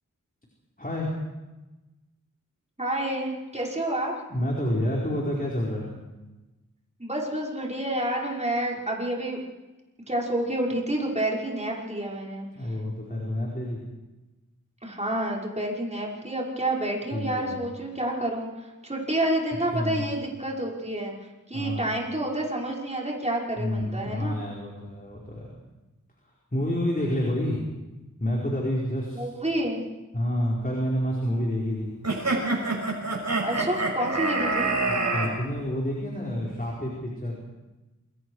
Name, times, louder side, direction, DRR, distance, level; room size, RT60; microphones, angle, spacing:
voice 1, 0.8-1.1 4.3-5.9 12.5-13.8 17.1-17.5 19.7-20.1 21.5-21.9 23.6-25.6 26.5-27.6 28.2-29.2 30.1-31.9 34.9-37.4, left 1 dB, 25° left, -3 dB, 4.9 m, -28 dB
voice 2, 2.8-4.1 7.0-9.4 10.1-12.5 14.8-21.1 21.5-24.4 29.1-29.8 33.4-34.7, right 1 dB, 20° right, -2 dB, 5.6 m, -29 dB
sound 1, 32.0-35.3, right 3 dB, 55° right, 6.3 m, -26 dB
27.5 x 23.5 x 4.9 m, 1.1 s
wide cardioid pair, 80°, 33 cm